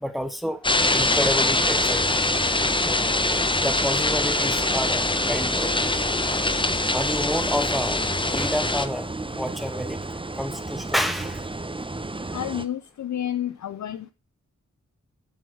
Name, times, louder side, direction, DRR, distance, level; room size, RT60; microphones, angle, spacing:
voice 1, 0.0-2.2 2.8-3.0 3.6-5.7 6.9-9.1 9.4-10.0 10.4-11.4, equal, ahead, 1.3 m, -29 dB
sound 1, 0.6-8.9, left 2 dB, 15° left, 0.8 m, -23 dB
sound 2, 0.8-12.6, right 2 dB, 15° right, 0.8 m, -33 dB
voice 2, 12.3-14.1, left 11 dB, 70° left, 0.5 m, -30 dB
11.5 x 3.9 x 6.3 m
cardioid pair, 40°, 30 cm